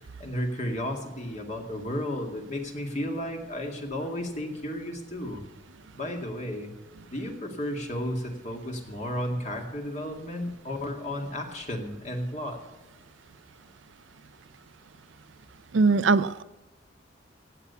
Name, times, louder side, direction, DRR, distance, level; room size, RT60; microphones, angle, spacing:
voice 1, 0.2-5.4 5.9-6.7 7.1-12.6, left 1 dB, 40° left, 2 dB, 2.2 m, -33 dB
voice 2, 15.7-16.4, right 4 dB, 75° right, 14 dB, 0.5 m, -21 dB
16.5 x 8.4 x 6.9 m, 1.0 s
head